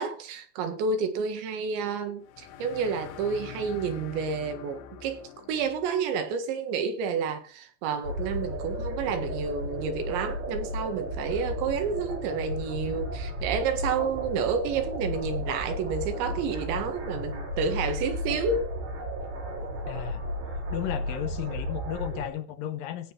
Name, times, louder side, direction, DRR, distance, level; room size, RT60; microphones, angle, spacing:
voice 1, 0.0-18.7, right 5 dB, 90° right, 4.0 m, -30 dB
sound 1, 2.2-6.0, left 9 dB, 90° left, 3.4 m, -44 dB
sound 2, 8.0-22.3, equal, 60° right, 5.9 m, -34 dB
voice 2, 19.9-20.2 20.7-23.1, left 11 dB, 75° left, 2.2 m, -34 dB
17.0 x 5.8 x 4.5 m
omnidirectional pair, 5.0 m